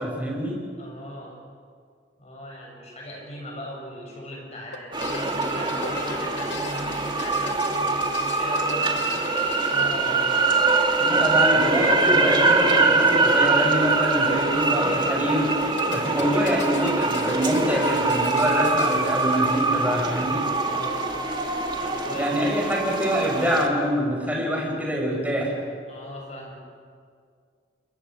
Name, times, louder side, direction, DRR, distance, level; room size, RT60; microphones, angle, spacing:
voice 1, 0.0-0.6 11.0-15.5 15.9-20.4 22.1-25.6, equal, 10° right, -1 dB, 5.5 m, -25 dB
voice 2, 0.8-1.3 2.2-9.0 9.7-10.3 20.7-21.2 21.8-22.5 25.9-26.5, equal, 40° left, -1 dB, 7.2 m, -38 dB
sound 1, 4.7-10.5 11.8-12.7 12.9-13.0 13.2-13.3 15.5-20.0, left 5 dB, 70° left, 2.2 m, -39 dB
sound 2, 4.9-23.7, right 3 dB, 25° right, 2.0 m, -23 dB
29.0 x 22.5 x 6.4 m, 2.2 s
head